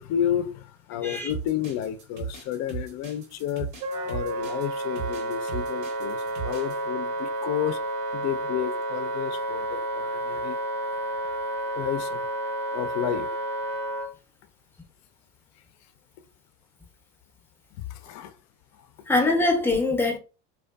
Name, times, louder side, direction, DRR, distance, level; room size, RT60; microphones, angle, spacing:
voice 1, 0.0-3.7 4.0-7.8 8.1-10.6 11.7-12.3 12.7-13.3 17.9-18.3 18.7-18.9, left 10 dB, 50° left, 0.4 m, -31 dB
sound 1, 1.3-6.8, right 5 dB, 80° right, 1.1 m, -37 dB
Wind instrument woodwind instrument, 3.8-14.1, right 1 dB, 50° right, 0.6 m, -31 dB
voice 2, 19.1-20.2, left 2 dB, 5° left, 0.6 m, -23 dB
2.5 x 2.2 x 2.2 m
hypercardioid pair, 80°, 35 cm